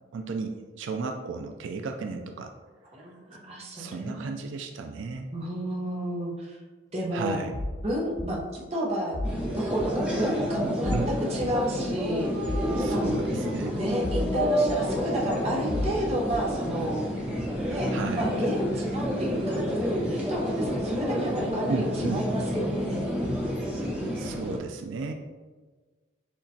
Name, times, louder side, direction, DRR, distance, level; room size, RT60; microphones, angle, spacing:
voice 1, 0.1-2.5 3.8-5.3 7.1-7.6 10.9-11.1 12.8-13.7 17.9-18.3 21.7-22.3 24.2-25.1, right 4 dB, 85° right, 5 dB, 0.4 m, -33 dB
voice 2, 2.9-4.4 5.3-6.6 6.9-7.4 7.8-9.2 9.5-10.9 11.3-12.3 12.9-13.0 13.7-17.0 17.6-17.9 18.2-21.9 22.1-23.1, right 1 dB, 35° right, -3 dB, 0.9 m, -31 dB
sound 1, 7.5-7.8 8.2-8.3 9.1-9.4 9.8-9.9 10.8-11.0 11.4-11.5 12.5-12.7 13.0-13.1 14.0-14.3 14.7-14.8 15.7-15.9 16.3-16.5, left 1 dB, 20° left, 0.3 m, -31 dB
sound 2, 9.2-24.6, equal, 5° right, 0.9 m, -29 dB
6.4 x 2.9 x 2.8 m, 1.4 s
head